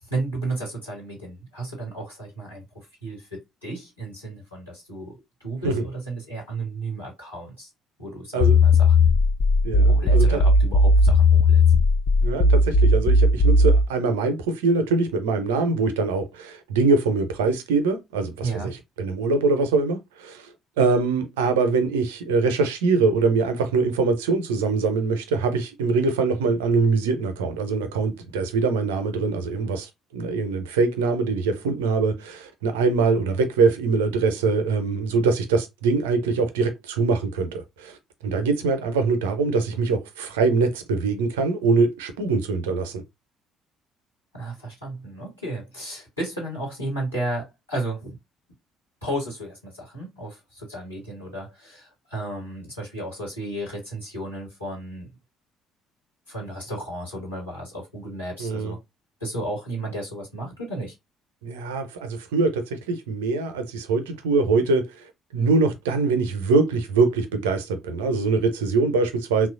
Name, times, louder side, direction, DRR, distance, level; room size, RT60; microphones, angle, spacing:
voice 1, 0.0-7.7 8.0-9.1 9.9-11.6 18.4-18.7 44.3-48.1 49.0-55.1 56.3-58.8 59.2-60.9, right 2 dB, 90° left, 1.5 m, -33 dB
sound 1, 8.4-13.9, left 2 dB, 50° left, 0.3 m, -17 dB
voice 2, 9.6-10.4 12.2-20.5 20.8-38.0 38.2-43.0 58.4-58.7 61.4-69.5, right 4 dB, 75° right, 0.5 m, -23 dB
3.0 x 2.3 x 2.4 m
figure-of-eight pair, 50°, 0 cm